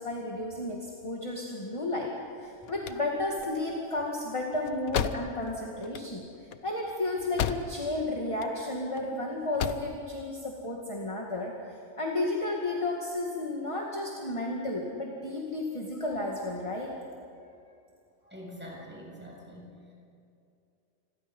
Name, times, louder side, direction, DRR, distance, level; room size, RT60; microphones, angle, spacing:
voice 1, 0.0-11.5 12.0-16.9, left 2 dB, 20° left, -1 dB, 2.2 m, -33 dB
sound 1, 2.4-8.0 8.3-9.0 9.4-10.0, left 9 dB, 85° left, 1.3 m, -35 dB
voice 2, 18.2-19.9, equal, 5° right, -3 dB, 7.3 m, -45 dB
28.5 x 22.5 x 5.5 m, 2.5 s
omnidirectional pair, 1.4 m